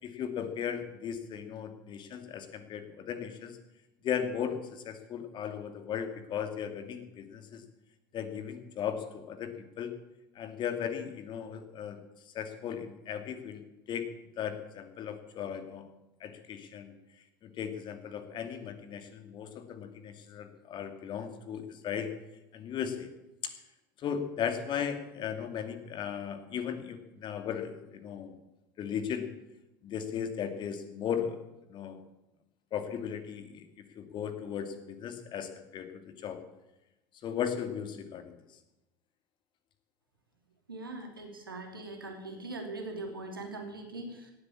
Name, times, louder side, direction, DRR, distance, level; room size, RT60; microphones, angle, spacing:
voice 1, 0.0-3.6 4.0-7.6 8.1-9.9 10.3-12.0 12.3-14.1 14.4-15.9 16.2-16.9 17.4-22.1 22.5-23.1 23.4-23.5 24.0-28.4 28.8-29.3 29.8-31.4 31.7-32.0 32.7-33.6 34.0-36.4 37.2-38.4, left 8 dB, 45° left, 8 dB, 2.4 m, -36 dB
voice 2, 40.7-44.3, right 2 dB, 90° right, 3 dB, 2.9 m, -41 dB
17.5 x 8.7 x 8.7 m, 0.94 s
hypercardioid pair, 75°, 11 cm